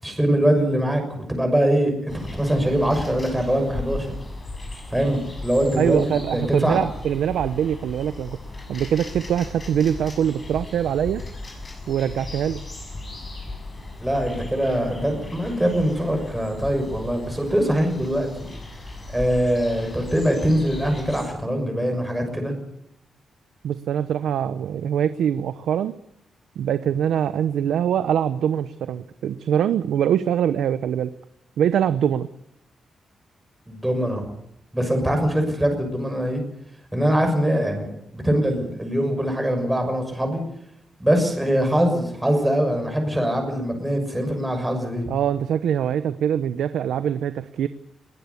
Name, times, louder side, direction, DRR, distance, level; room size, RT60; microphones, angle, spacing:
voice 1, 0.0-4.1 4.9-6.8 14.0-18.5 19.1-22.5 33.7-34.2 34.7-36.4 36.9-40.4 41.0-45.1, equal, 5° right, 4 dB, 6.3 m, -23 dB
sound 1, 2.1-21.3, left 2 dB, 25° left, 7.1 m, -37 dB
voice 2, 5.8-8.4 8.7-11.2 11.9-12.6 23.6-25.9 26.6-31.1 31.6-32.3 45.1-47.7, right 9 dB, 90° right, 12 dB, 0.8 m, -23 dB
21.5 x 18.0 x 8.4 m, 0.77 s
wide cardioid pair, 145°, 0 cm